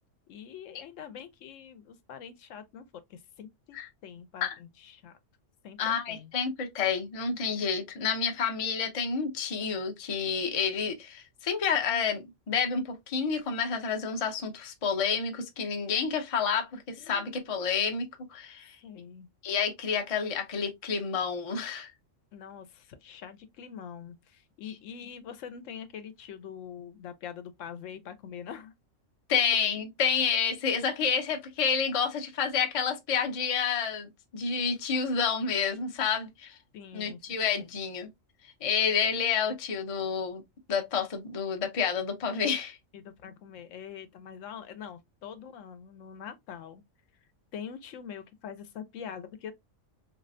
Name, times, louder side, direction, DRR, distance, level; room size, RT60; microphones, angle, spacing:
voice 1, 0.3-2.8 3.1-3.8 4.0-5.2 5.6-6.3 17.0-17.3 18.8-19.3 22.3-28.7 36.7-37.2 42.9-46.8 47.5-49.5, left 8 dB, 75° left, 0.9 m, -44 dB
voice 2, 5.8-18.8 19.4-21.9 29.3-36.6 36.9-38.1 38.6-40.4 40.7-42.8, left 6 dB, 40° left, 0.5 m, -29 dB
3.2 x 2.6 x 2.5 m
omnidirectional pair, 1.3 m